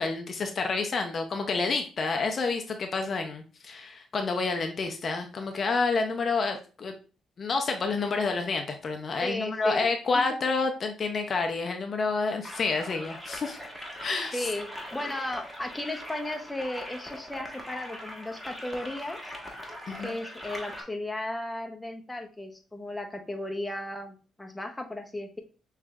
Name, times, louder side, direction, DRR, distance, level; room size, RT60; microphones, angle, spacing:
voice 1, 0.0-6.9 7.4-13.6 14.0-14.5 19.9-20.1, left 4 dB, 45° left, 4 dB, 0.6 m, -29 dB
voice 2, 9.2-9.9 10.1-10.2 14.3-19.2 20.0-25.4, left 1 dB, 10° left, 3 dB, 0.8 m, -35 dB
sound 1, 12.4-20.8, equal, 5° right, 1.4 m, -41 dB
6.0 x 3.2 x 2.4 m, 0.36 s
cardioid pair, 90°, 0 cm